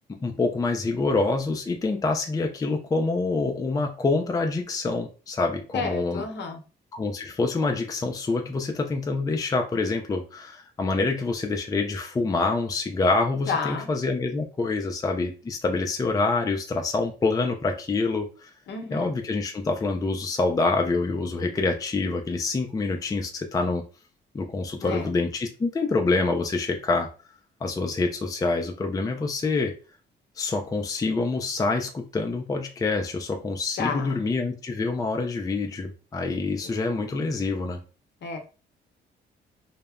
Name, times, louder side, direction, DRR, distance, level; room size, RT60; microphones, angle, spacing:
voice 1, 0.2-6.2 6.9-18.5 18.9-23.8 24.3-27.1 27.6-29.7 30.4-37.8, left 3 dB, 20° left, 4 dB, 0.4 m, -26 dB
voice 2, 5.7-6.6 13.5-13.9 18.7-19.1 24.8-25.1 33.8-34.2 38.2-38.4, left 5 dB, 65° left, 4 dB, 0.7 m, -30 dB
2.1 x 2.0 x 3.4 m, 0.35 s
cardioid pair, 90°, 20 cm